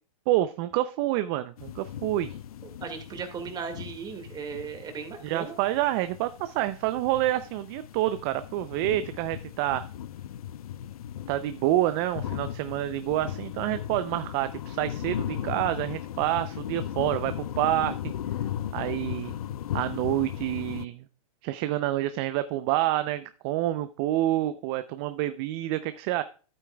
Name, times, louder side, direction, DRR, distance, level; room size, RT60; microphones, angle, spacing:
voice 1, 0.3-2.4 5.2-9.8 11.3-17.9 18.7-19.3 19.7-21.0 21.4-26.2, right 14 dB, 40° right, 12 dB, 0.5 m, -28 dB
sound 1, 1.6-20.9, left 10 dB, 80° left, 0.5 m, -37 dB
voice 2, 2.6-5.5, right 6 dB, 20° right, 5 dB, 2.0 m, -37 dB
12.5 x 8.6 x 2.3 m, 0.36 s
hypercardioid pair, 125°, 19 cm